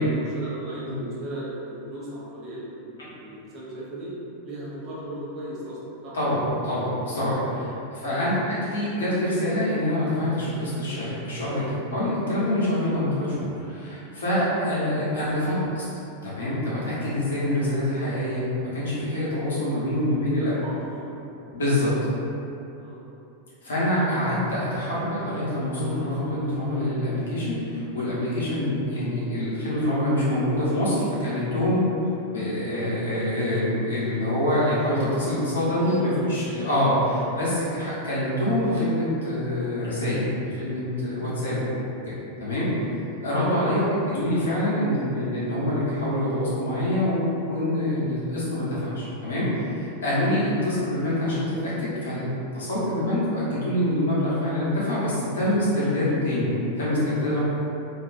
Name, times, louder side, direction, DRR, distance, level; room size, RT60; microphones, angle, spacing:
voice 1, 0.0-2.9 3.2-4.1 4.4-6.1 7.5-8.5 14.8-15.0 15.4-15.6 19.9-21.1 22.8-23.0 36.0-36.3 43.4-44.0, right 1 dB, 30° right, -9 dB, 0.7 m, -37 dB
voice 2, 6.1-8.4 8.7-15.8 16.2-18.4 18.7-20.6 21.5-21.9 23.6-31.9 32.3-41.6 42.1-42.2 42.4-42.7 43.2-51.7 52.0-57.4, left 1 dB, 65° left, -9 dB, 0.8 m, -25 dB
2.5 x 2.2 x 2.4 m, 2.8 s
figure-of-eight pair, 90°, 0 cm